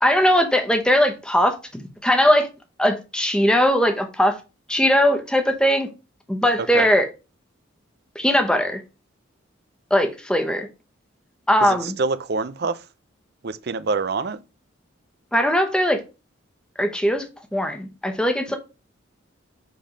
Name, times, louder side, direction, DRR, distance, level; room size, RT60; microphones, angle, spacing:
voice 1, 0.0-2.5 2.8-4.4 4.7-5.9 6.3-7.1 8.1-8.8 9.9-10.7 11.5-11.9 15.3-16.0 16.8-17.2 17.5-18.6, equal, 5° left, 0.9 m, -19 dB
voice 2, 11.6-12.8 13.4-14.4, right 4 dB, 50° right, 0.5 m, -26 dB
7.7 x 3.5 x 5.0 m
head